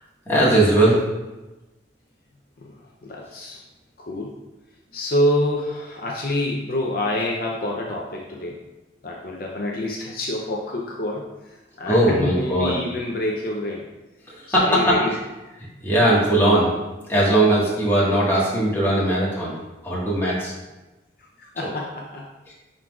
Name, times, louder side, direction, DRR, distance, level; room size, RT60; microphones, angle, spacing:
voice 1, 0.2-1.0 11.8-12.7 14.3-15.0 15.8-16.7 17.1-19.5 19.8-20.5 21.6-21.7 22.5-22.6, right 1 dB, 15° left, -7 dB, 1.6 m, -19 dB
voice 2, 3.0-3.6 4.1-4.3 4.9-8.5 9.0-11.2 11.8-13.8 14.6-15.1 21.4-22.3, left 1 dB, 55° left, -2 dB, 0.6 m, -26 dB
10.5 x 3.8 x 2.4 m, 1.1 s
head